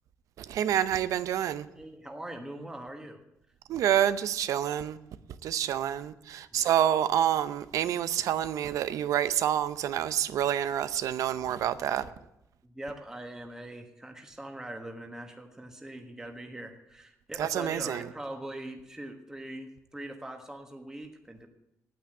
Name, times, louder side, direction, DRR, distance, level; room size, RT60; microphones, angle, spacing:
voice 1, 0.4-1.7 3.7-5.0 5.4-12.1 17.4-18.1, right 10 dB, 90° right, 0.6 m, -28 dB
voice 2, 1.7-3.2 6.5-6.7 11.6-12.1 12.6-21.5, right 1 dB, 10° right, 1.4 m, -42 dB
9.6 x 8.6 x 8.8 m
cardioid pair, 115°, 6 cm